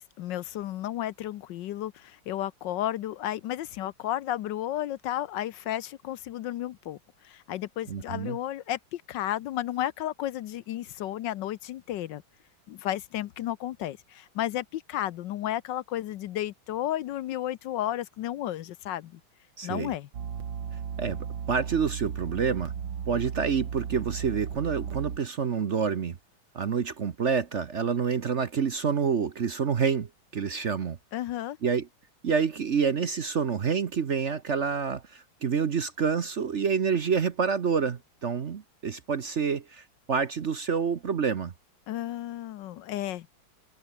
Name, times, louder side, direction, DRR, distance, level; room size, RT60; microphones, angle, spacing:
voice 1, 0.0-7.0 7.2-12.2 12.7-19.2 19.6-20.1 31.1-31.6 41.9-43.3, left 13 dB, 70° left, 1.3 m, -33 dB
voice 2, 7.9-8.4 19.6-19.9 21.0-22.7 23.1-26.2 26.5-31.0 31.6-31.9 32.2-41.5, right 6 dB, 45° right, 1.0 m, -28 dB
sound 1, 20.1-25.2, right 7 dB, 70° right, 2.5 m, -35 dB
omnidirectional pair, 2.2 m